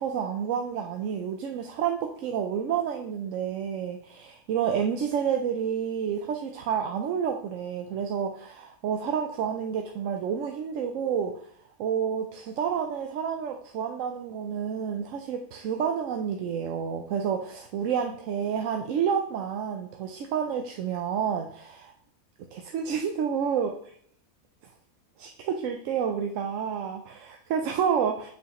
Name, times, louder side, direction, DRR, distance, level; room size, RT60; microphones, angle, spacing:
voice 1, 0.0-11.5 11.8-21.9 22.5-23.7 25.2-28.3, right 7 dB, 70° right, 4 dB, 0.9 m, -29 dB
7.3 x 5.7 x 3.0 m, 0.64 s
omnidirectional pair, 1.5 m